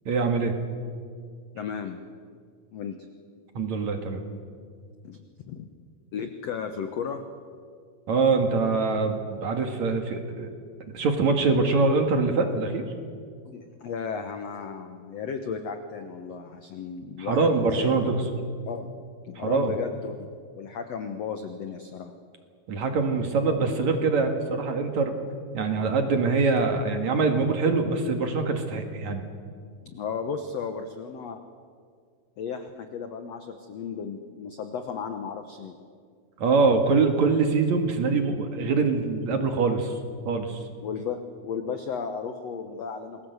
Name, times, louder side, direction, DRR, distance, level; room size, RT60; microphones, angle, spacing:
voice 1, 0.1-0.5 3.5-4.2 8.1-10.5 10.9-12.8 17.2-18.2 19.4-19.7 22.7-25.2 25.5-29.3 36.4-40.0 40.3-40.6, right 4 dB, 55° right, 5 dB, 2.8 m, -24 dB
voice 2, 1.6-2.0 2.7-3.1 5.0-5.2 5.4-5.7 6.1-7.2 13.5-18.0 18.7-18.9 19.2-20.3 20.5-22.1 29.8-31.4 32.4-35.8 40.8-43.2, left 6 dB, 70° left, 7 dB, 1.6 m, -34 dB
28.0 x 21.0 x 8.1 m, 2.1 s
omnidirectional pair, 4.5 m